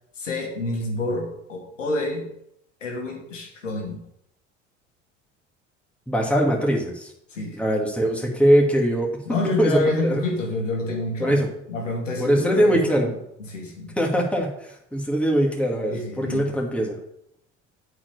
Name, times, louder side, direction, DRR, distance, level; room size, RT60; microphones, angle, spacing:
voice 1, 0.2-2.3 2.8-4.0 7.3-7.6 9.2-11.4 11.7-13.1 13.5-14.0 15.9-16.5, left 2 dB, 85° left, 0 dB, 2.0 m, -28 dB
voice 2, 6.1-7.1 7.6-9.1 9.6-10.2 11.2-11.5 12.2-13.1 14.0-17.0, equal, 5° left, -1 dB, 2.4 m, -21 dB
8.5 x 4.9 x 6.8 m, 0.76 s
figure-of-eight pair, 65°, 37 cm